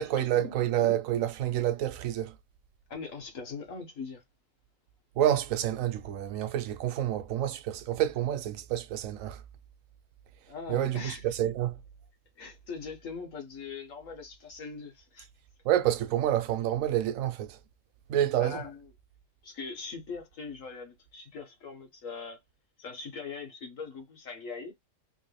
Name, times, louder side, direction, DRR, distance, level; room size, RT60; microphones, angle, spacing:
voice 1, 0.0-2.4 5.2-9.4 10.7-11.8 15.6-17.6 18.1-18.7, right 11 dB, 85° right, 1.0 m, -28 dB
voice 2, 2.9-4.2 10.5-11.2 12.4-15.3 18.4-18.8 19.4-22.4 22.8-24.7, left 5 dB, 80° left, 1.8 m, -41 dB
3.7 x 2.5 x 3.1 m
omnidirectional pair, 1.4 m